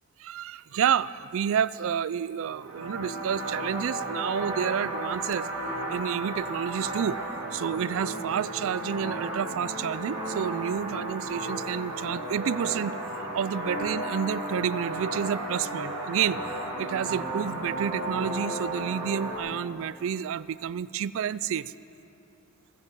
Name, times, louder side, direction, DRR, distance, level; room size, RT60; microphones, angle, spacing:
voice 1, 0.2-5.5 5.9-7.2 7.5-16.4 16.8-21.7, right 8 dB, 65° right, 19 dB, 0.3 m, -29 dB
sound 1, 2.4-19.4, right 1 dB, 85° right, 4.0 m, -34 dB
20.0 x 15.5 x 4.7 m, 3.0 s
head